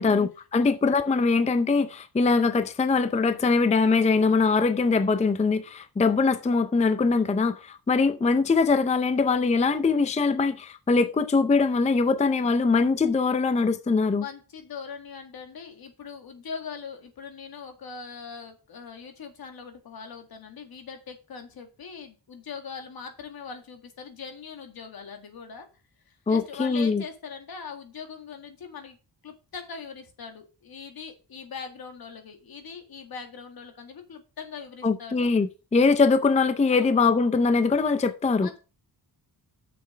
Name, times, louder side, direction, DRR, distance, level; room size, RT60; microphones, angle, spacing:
voice 1, 0.0-14.2 26.3-27.0 34.8-38.5, left 4 dB, 20° left, 0.5 m, -22 dB
voice 2, 14.2-25.7 26.1-29.0 29.2-35.3 36.7-36.9 38.4-38.6, left 6 dB, 65° left, 2.0 m, -41 dB
6.9 x 6.6 x 5.0 m
wide cardioid pair, 145°, 38 cm